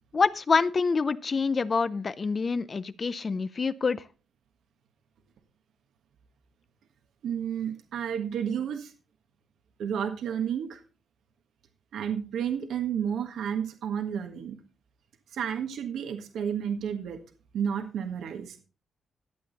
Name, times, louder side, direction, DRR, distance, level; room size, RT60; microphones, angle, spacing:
voice 1, 0.1-4.0, left 4 dB, 35° left, 15 dB, 0.5 m, -26 dB
voice 2, 7.2-8.9 9.8-10.8 11.9-14.6 15.3-17.2 17.5-18.5, right 8 dB, 85° right, 6 dB, 1.5 m, -31 dB
12.5 x 8.4 x 4.0 m, 0.33 s
cardioid pair, 120°, 0 cm